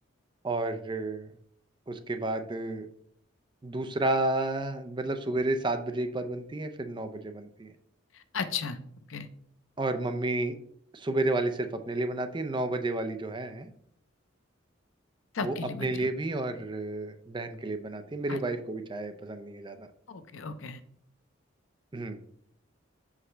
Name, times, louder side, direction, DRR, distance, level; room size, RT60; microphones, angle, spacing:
voice 1, 0.4-1.3 1.9-2.9 3.6-7.7 9.8-10.5 10.9-13.7 15.4-19.9 21.9-22.2, right 2 dB, 25° right, 8 dB, 0.4 m, -31 dB
voice 2, 8.3-8.8 9.1-9.3 15.3-16.1 18.3-18.4 20.1-20.8, left 5 dB, 80° left, 10 dB, 0.6 m, -35 dB
6.1 x 4.9 x 3.3 m, 0.66 s
head